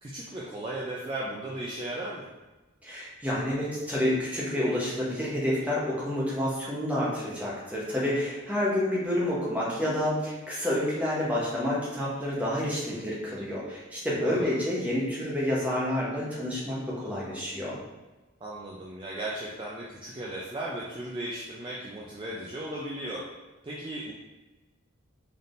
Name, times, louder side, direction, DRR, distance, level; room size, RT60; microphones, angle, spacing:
voice 1, 0.0-2.3 14.2-14.5 18.4-23.2 23.6-24.1, right 1 dB, 25° right, -5 dB, 0.4 m, -36 dB
voice 2, 2.8-17.8, left 1 dB, 5° right, -7 dB, 0.9 m, -29 dB
4.1 x 3.5 x 2.5 m, 1.1 s
head